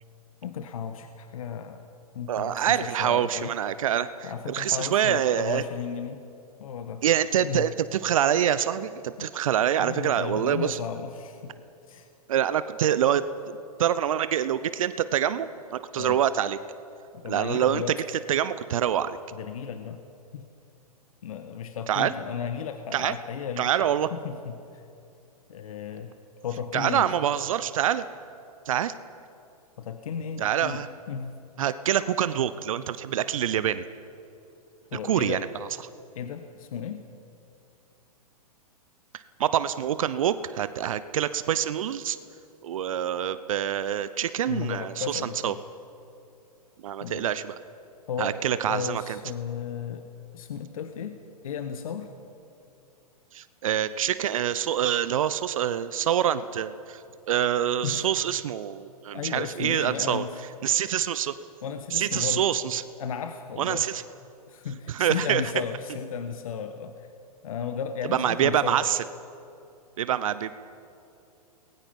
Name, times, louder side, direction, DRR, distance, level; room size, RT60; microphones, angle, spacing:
voice 1, 0.4-1.9 2.1-3.5 4.2-6.2 6.6-7.0 7.4-7.7 9.2-9.3 9.8-12.1 15.9-16.2 17.1-18.0 19.3-20.0 20.3-20.5 21.2-23.7 24.1-24.9 25.5-26.1 26.4-27.1 29.8-31.4 34.9-35.4 36.1-37.1 44.5-45.6 47.0-47.3 48.1-50.1 50.3-52.1 57.8-58.1 59.1-60.4 61.6-62.5 63.0-63.9 64.5-67.1 67.4-68.9, left 7 dB, 60° left, 8 dB, 1.4 m, -34 dB
voice 2, 2.3-5.6 7.0-10.8 12.3-16.6 17.3-17.8 18.3-19.2 21.9-22.1 22.9-23.1 23.6-24.1 26.7-28.0 28.7-28.9 30.4-30.9 31.6-33.8 35.0-35.4 39.4-42.2 42.6-45.5 46.8-47.5 48.2-49.2 53.3-57.0 57.3-60.2 60.6-61.3 61.9-62.8 63.6-64.0 64.9-65.4 68.1-69.0 70.0-70.5, right 10 dB, 60° right, 14 dB, 0.9 m, -26 dB
29.0 x 21.0 x 5.5 m, 2.7 s
figure-of-eight pair, 110°, 20 cm